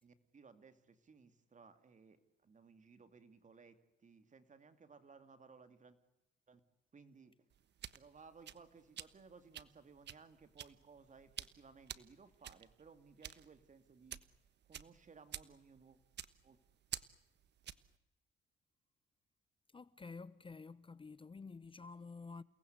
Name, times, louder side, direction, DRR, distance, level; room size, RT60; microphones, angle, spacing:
voice 1, 0.0-6.0 6.5-6.6 6.9-7.4 7.9-14.2 14.7-16.0 16.4-16.6, right 5 dB, 40° right, 2.6 m, -60 dB
sound 1, 7.5-18.0, right 10 dB, 60° right, 1.2 m, -51 dB
voice 2, 19.7-22.4, left 4 dB, 25° left, 0.9 m, -50 dB
29.5 x 19.0 x 8.1 m
cardioid pair, 90°, 20 cm